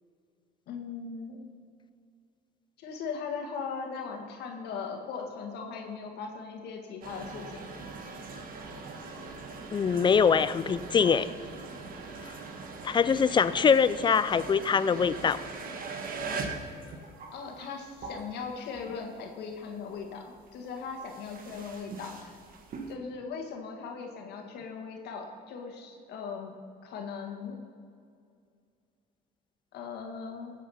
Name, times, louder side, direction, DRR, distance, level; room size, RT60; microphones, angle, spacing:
voice 1, 0.7-1.5 2.8-7.7 17.3-20.2 20.5-22.4 22.9-26.5 26.8-27.6 29.7-30.5, left 5 dB, 75° left, 2 dB, 1.8 m, -39 dB
sound 1, 7.0-19.3 19.6-22.9, right 4 dB, 55° right, 1.7 m, -41 dB
voice 2, 9.7-11.3 12.8-15.4, left 6 dB, 30° left, 15 dB, 0.5 m, -23 dB
17.0 x 7.4 x 5.7 m, 2.3 s
cardioid pair, 110°, 17 cm